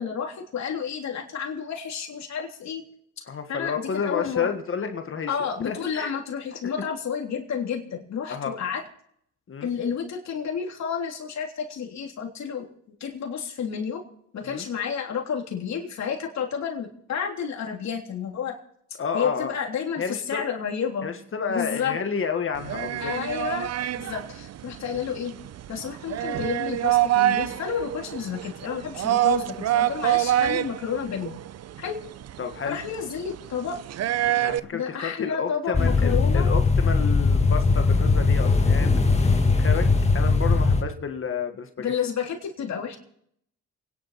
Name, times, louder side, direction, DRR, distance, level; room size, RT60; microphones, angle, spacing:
voice 1, 0.0-2.8 3.2-3.3 3.5-4.5 5.3-8.8 9.6-12.7 13.0-14.0 14.3-18.6 19.1-21.1 21.5-22.0 23.0-23.7 24.0-25.3 25.7-31.4 31.8-32.0 32.6-33.8 34.7-36.5 41.8-43.0, left 7 dB, 65° left, 1 dB, 3.5 m, -30 dB
voice 2, 3.3-5.3 5.7-6.1 6.6-6.7 8.3-8.5 9.5-9.7 14.4-14.6 19.0-19.5 20.0-20.4 21.0-23.1 24.9-25.0 32.4-32.8 34.3-39.0 39.3-39.9 40.1-41.9, left 6 dB, 45° left, 6 dB, 1.7 m, -31 dB
sound 1, 22.6-34.6, right 13 dB, 55° right, 0.6 m, -27 dB
sound 2, 35.7-40.8, left 4 dB, 20° left, 1.8 m, -20 dB
27.5 x 10.5 x 4.3 m, 0.68 s
cardioid pair, 90°, 30 cm